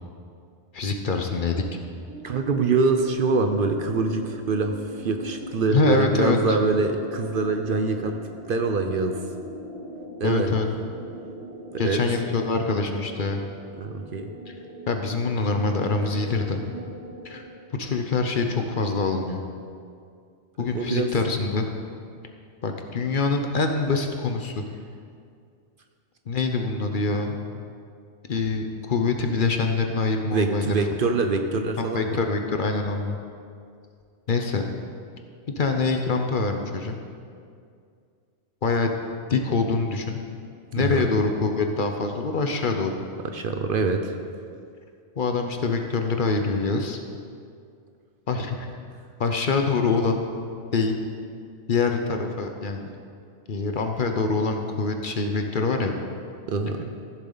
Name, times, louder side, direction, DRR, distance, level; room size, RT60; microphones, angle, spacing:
voice 1, 0.7-1.6 5.7-6.6 10.2-10.7 11.8-13.4 14.5-14.6 14.9-16.6 17.2-17.4 17.8-19.4 20.6-21.7 22.6-24.6 26.3-27.4 28.3-30.9 31.3-31.5 31.8-33.2 34.3-34.6 35.6-37.0 38.6-39.0 39.3-40.2 40.7-42.9 45.2-47.0 48.3-48.7 49.2-50.2 50.7-50.9 51.7-52.9 53.5-55.9, left 4 dB, 50° left, 4 dB, 0.8 m, -25 dB
sound 1, 2.0-17.4, right 1 dB, 80° right, 2.4 m, -40 dB
voice 2, 2.2-8.2 8.5-9.2 10.2-10.6 11.7-12.0 13.8-14.3 20.6-21.1 30.3-32.0 40.8-41.1 43.3-44.1 56.5-56.9, right 3 dB, 55° right, 6 dB, 0.7 m, -24 dB
15.0 x 7.2 x 3.9 m, 2.3 s
omnidirectional pair, 1.2 m